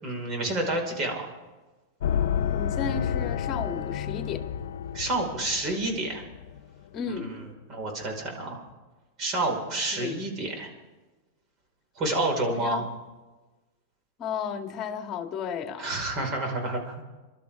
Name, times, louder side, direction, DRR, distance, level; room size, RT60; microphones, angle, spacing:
voice 1, 0.0-1.3 4.9-6.2 7.1-7.3 7.7-8.6 9.2-10.7 12.0-12.8 15.8-17.0, right 2 dB, 35° right, 2 dB, 5.1 m, -29 dB
sound 1, 2.0-6.7, left 8 dB, 75° left, 0.8 m, -30 dB
voice 2, 2.5-4.5 6.9-7.5 9.9-10.2 12.5-12.8 14.2-16.0, left 6 dB, 35° left, 5 dB, 1.9 m, -34 dB
27.0 x 12.5 x 3.7 m, 1.2 s
hypercardioid pair, 125°, 0 cm